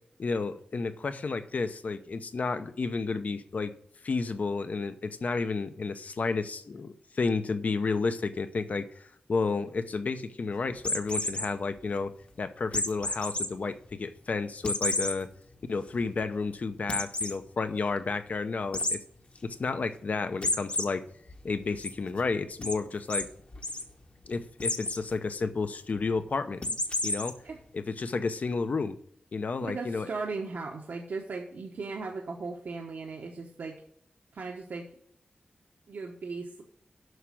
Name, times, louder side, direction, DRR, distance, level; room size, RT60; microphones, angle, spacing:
voice 1, 0.2-3.7 4.0-15.3 15.7-19.0 19.4-21.0 21.4-23.3 24.3-26.6 27.0-27.4 27.7-29.0 29.3-30.1, left 4 dB, 60° left, 10 dB, 0.8 m, -31 dB
sound 1, 10.8-11.5 12.7-13.5 13.9-14.0 14.6-15.1 15.6-15.7 16.0-16.1 16.9-17.3 18.7-19.0 20.4-20.8 21.3-21.9 22.6-22.8 23.1-23.2 23.5-23.8 24.6-25.0 26.6-27.3, left 2 dB, 40° left, 1.1 m, -30 dB
voice 2, 29.6-33.7 34.3-34.8 35.9-36.6, right 4 dB, 80° right, 0 dB, 1.1 m, -37 dB
8.0 x 6.1 x 7.4 m, 0.68 s
wide cardioid pair, 110°, 3 cm